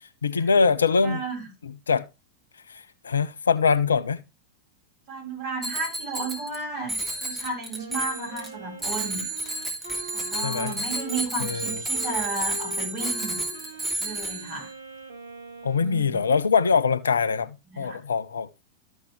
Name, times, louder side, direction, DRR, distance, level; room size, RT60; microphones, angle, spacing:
voice 1, 0.2-1.2 1.6-2.1 2.7-4.2 10.4-10.8 11.4-11.8 15.6-18.5, left 5 dB, 70° left, 0.6 m, -23 dB
voice 2, 1.0-1.4 5.1-9.2 10.1-13.4 14.0-14.7 15.8-16.2 17.7-18.0, right 3 dB, 45° right, 6.8 m, -33 dB
Bicycle bell, 5.6-6.6 6.9-8.5 8.8-14.7, right 2 dB, 10° right, 3.0 m, -31 dB
Wind instrument woodwind instrument, 7.8-16.2, right 2 dB, 75° right, 1.8 m, -42 dB
13.0 x 6.4 x 3.2 m
figure-of-eight pair, 90°, 0 cm